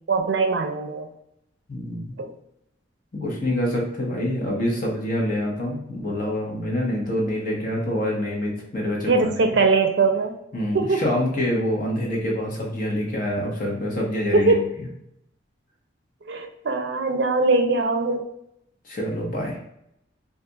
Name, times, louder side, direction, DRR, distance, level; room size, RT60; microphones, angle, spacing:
voice 1, 0.1-1.1 2.2-2.3 9.1-10.3 10.7-11.0 14.3-14.6 16.3-18.2, right 3 dB, 60° right, 5 dB, 0.5 m, -21 dB
voice 2, 1.7-2.1 3.1-9.1 10.5-14.5 18.8-19.6, left 1 dB, 45° left, -2 dB, 1.0 m, -26 dB
2.5 x 2.3 x 3.8 m, 0.79 s
head